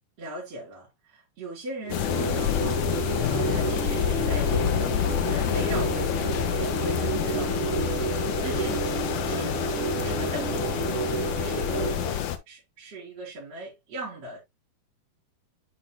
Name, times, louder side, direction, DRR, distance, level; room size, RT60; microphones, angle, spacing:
voice 1, 0.2-14.4, right 2 dB, 50° right, 3.8 m, -40 dB
sound 1, 1.8-12.2, right 5 dB, 25° right, 2.0 m, -31 dB
sound 2, 1.9-12.4, left 11 dB, 80° left, 1.5 m, -28 dB
10.0 x 4.6 x 2.2 m
omnidirectional pair, 4.1 m